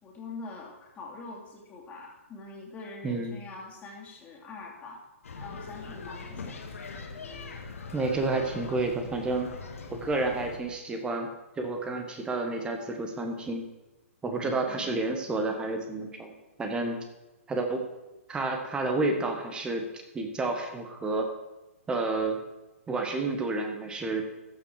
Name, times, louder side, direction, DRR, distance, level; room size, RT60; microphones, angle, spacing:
voice 1, 0.0-5.0 5.4-6.6 14.4-15.0, left 3 dB, 20° left, -2 dB, 2.8 m, -44 dB
voice 2, 3.0-3.4 6.4-6.5 7.9-9.5 9.9-11.3 11.6-13.6 14.2-16.3 16.6-17.0 17.5-17.8 18.3-19.9 20.1-21.3 21.9-22.4 22.9-24.3, right 2 dB, 10° right, 5 dB, 1.4 m, -30 dB
sound 1, 5.2-10.6, left 4 dB, 75° left, 1.8 m, -41 dB
14.5 x 6.0 x 4.9 m, 1.1 s
hypercardioid pair, 130°, 8 cm